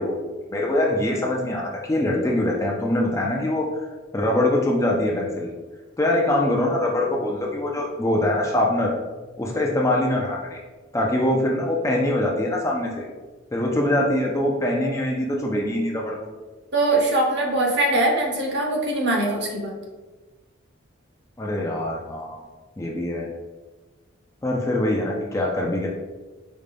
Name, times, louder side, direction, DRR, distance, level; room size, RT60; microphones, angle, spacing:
voice 1, 0.0-3.7 4.1-5.5 6.0-8.9 9.4-10.6 10.9-13.1 13.5-16.3 21.4-22.4 22.8-23.3 24.4-25.9, left 1 dB, 15° left, -1 dB, 0.3 m, -23 dB
voice 2, 16.7-19.7, right 2 dB, 55° right, -1 dB, 0.8 m, -22 dB
5.1 x 2.2 x 3.3 m, 1.3 s
head